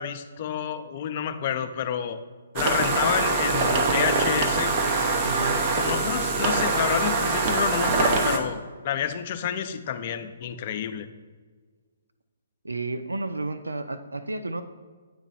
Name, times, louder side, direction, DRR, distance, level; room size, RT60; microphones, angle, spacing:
voice 1, 0.0-2.2 2.5-4.7 5.7-11.1, left 9 dB, 45° left, 9 dB, 0.5 m, -29 dB
sound 1, 2.6-8.4, right 3 dB, 35° right, 0.7 m, -24 dB
voice 2, 5.2-5.6 12.6-14.6, right 2 dB, 85° right, 11 dB, 0.3 m, -32 dB
9.0 x 3.1 x 4.1 m, 1.5 s
figure-of-eight pair, 130°, 0 cm